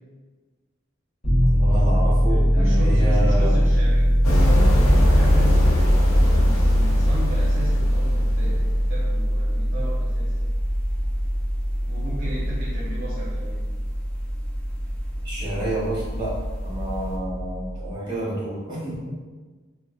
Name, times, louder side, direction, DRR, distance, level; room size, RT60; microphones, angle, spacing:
Piano, 1.2-17.9, equal, 40° left, 1.0 m, -22 dB
voice 1, 1.6-3.6 15.2-16.4 16.6-19.0, right 1 dB, 20° right, -8 dB, 0.9 m, -28 dB
voice 2, 2.5-5.7 6.2-10.3 11.9-13.7, equal, 50° right, -8 dB, 0.6 m, -35 dB
sound 1, 3.4-17.2, equal, 10° left, 0.5 m, -38 dB
sound 2, 4.2-9.0, left 1 dB, 75° left, 0.5 m, -22 dB
2.6 x 2.1 x 2.2 m, 1.4 s
head